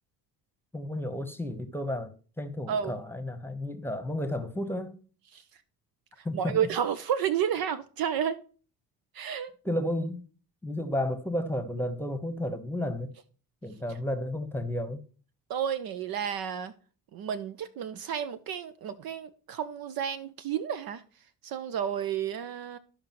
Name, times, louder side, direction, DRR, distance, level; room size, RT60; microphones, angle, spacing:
voice 1, 0.7-5.0 6.2-6.6 9.6-10.2 10.6-13.1 13.6-15.0, left 1 dB, 5° left, 1.1 m, -32 dB
voice 2, 6.3-8.4 9.1-9.5 15.5-16.7 17.1-21.0 21.4-22.8, right 8 dB, 50° right, 0.6 m, -31 dB
13.5 x 5.1 x 3.1 m
hypercardioid pair, 50°, 47 cm